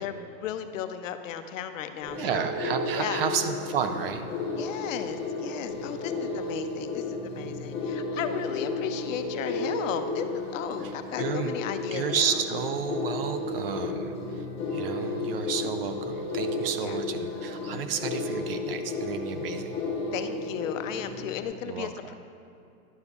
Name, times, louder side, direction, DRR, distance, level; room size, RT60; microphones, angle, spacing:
voice 1, 0.0-2.5 3.0-3.3 4.6-12.0 16.8-17.0 20.1-22.1, left 9 dB, 60° left, 9 dB, 0.6 m, -35 dB
sound 1, 2.0-21.4, left 3 dB, 15° left, 1.6 m, -33 dB
voice 2, 2.1-4.3 10.8-10.9 11.2-11.5 11.9-14.4 14.7-19.8 21.7-21.9, right 7 dB, 45° right, 8 dB, 0.4 m, -31 dB
11.0 x 6.4 x 2.4 m, 2.5 s
hypercardioid pair, 135°, 43 cm